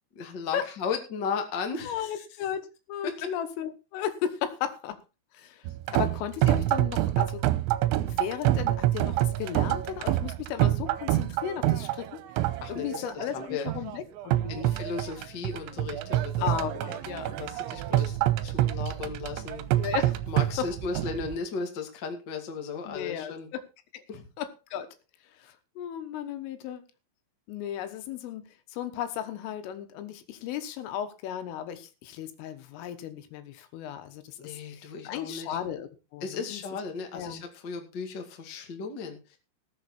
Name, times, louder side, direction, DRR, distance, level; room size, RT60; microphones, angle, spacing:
voice 1, 0.1-2.2 3.0-3.3 12.6-13.7 14.5-16.9 17.3-18.2 18.4-19.6 20.3-23.5 24.1-24.2 34.4-35.6 36.2-39.4, left 5 dB, 40° left, 4 dB, 1.6 m, -36 dB
voice 2, 1.9-2.6 2.9-5.0 5.3-5.6 5.9-7.4 8.1-12.2 12.7-14.6 16.4-17.3 19.8-20.2 20.6-20.7 22.9-23.6 23.9-24.0 24.4-24.9 25.4-26.8 27.5-28.4 28.7-36.6 37.1-37.4, left 9 dB, 85° left, 8 dB, 3.9 m, -35 dB
sound 1, 5.7-21.4, right 14 dB, 80° right, 3.0 m, -27 dB
19.0 x 7.5 x 4.3 m, 0.30 s
omnidirectional pair, 5.6 m